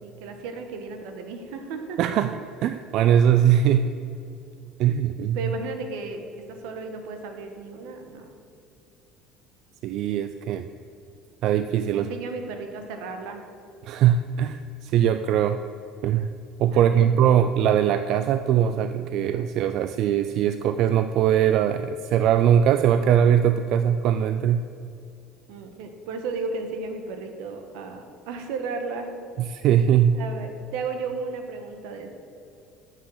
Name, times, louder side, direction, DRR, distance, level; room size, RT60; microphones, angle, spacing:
voice 1, 0.0-2.0 5.3-8.3 11.9-13.4 16.7-17.1 25.5-29.1 30.1-32.1, right 4 dB, 80° right, 6 dB, 1.3 m, -34 dB
voice 2, 2.0-3.9 4.8-5.5 9.8-10.7 11.4-12.1 13.8-15.6 16.0-16.3 16.6-24.7 29.4-30.2, right 9 dB, 50° right, 10 dB, 0.3 m, -21 dB
7.4 x 7.2 x 7.8 m, 2.6 s
cardioid pair, 155°, 0 cm